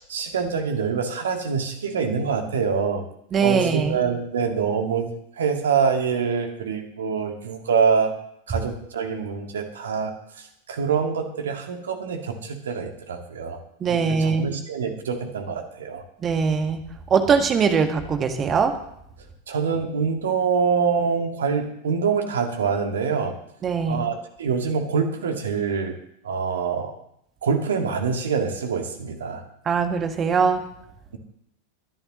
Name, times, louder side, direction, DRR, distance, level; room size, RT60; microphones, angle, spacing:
voice 1, 0.0-3.0 3.4-5.1 5.4-8.1 8.5-13.6 13.9-16.0 19.5-23.3 23.9-25.9 26.2-26.9 27.4-29.4, right 6 dB, 65° right, 5 dB, 2.0 m, -25 dB
voice 2, 3.3-4.0 13.8-14.5 16.2-16.8 17.1-18.7 23.6-24.0 29.6-30.6, right 5 dB, 25° right, 6 dB, 1.7 m, -21 dB
22.5 x 11.0 x 3.1 m, 0.74 s
figure-of-eight pair, 90°, 0 cm